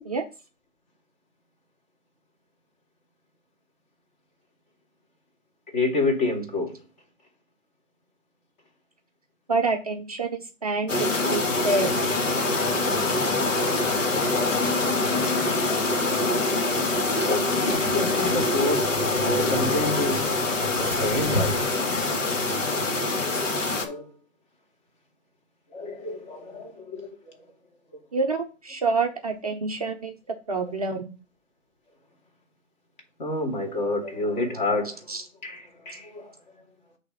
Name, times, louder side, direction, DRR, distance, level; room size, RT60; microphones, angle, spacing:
voice 1, 5.7-6.7 17.2-20.2 20.8-21.9 23.4-24.1 25.7-27.1 33.2-35.0 35.4-36.3, left 2 dB, 35° left, 2.5 m, -28 dB
voice 2, 9.5-10.9 11.2-12.0 28.1-30.1 30.5-31.0 35.1-35.2, right 3 dB, 30° right, 0.6 m, -27 dB
sound 1, 10.9-23.9, left 2 dB, 70° left, 2.3 m, -24 dB
8.5 x 3.4 x 5.5 m
figure-of-eight pair, 145°, 40 cm